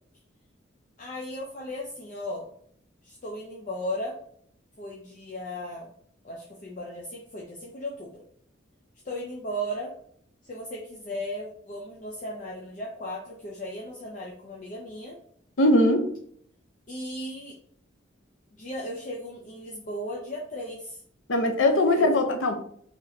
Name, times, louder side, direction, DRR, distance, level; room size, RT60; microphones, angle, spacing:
voice 1, 1.0-2.5 3.0-4.2 4.8-5.9 6.2-8.2 9.0-9.9 10.4-15.2 16.9-17.6 18.5-21.0 21.7-22.2, equal, 40° left, -3 dB, 0.6 m, -36 dB
voice 2, 15.6-16.1 21.3-22.6, left 1 dB, 85° left, 5 dB, 0.7 m, -21 dB
4.0 x 2.9 x 2.7 m, 0.63 s
head